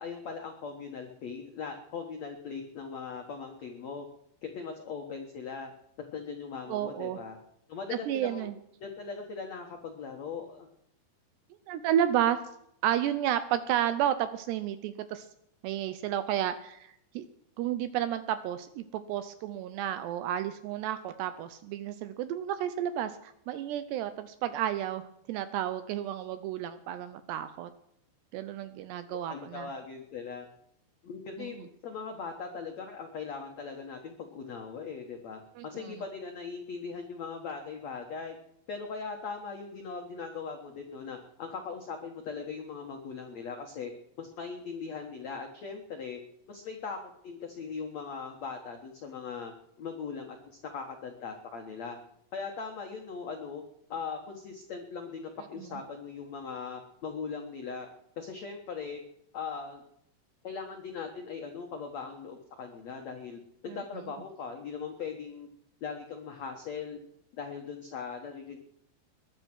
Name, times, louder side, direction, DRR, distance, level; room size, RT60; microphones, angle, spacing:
voice 1, 0.0-4.1 4.4-5.7 6.1-7.4 7.7-8.5 8.8-10.7 29.3-30.4 31.0-38.4 38.7-43.9 44.2-46.2 46.5-47.0 47.2-49.5 49.8-52.0 52.3-53.6 53.9-57.9 58.2-59.0 59.3-59.8 60.4-65.5 65.8-67.0 67.3-68.6, left 5 dB, 85° left, 3 dB, 1.5 m, -39 dB
voice 2, 6.7-7.2 8.1-8.6 11.7-12.4 12.8-15.3 15.6-17.3 17.6-27.7 28.3-29.7 31.4-31.5 35.6-36.0 55.6-55.8 63.7-63.8, right 11 dB, 80° right, 12 dB, 2.5 m, -32 dB
21.5 x 10.0 x 6.2 m, 0.76 s
omnidirectional pair, 5.5 m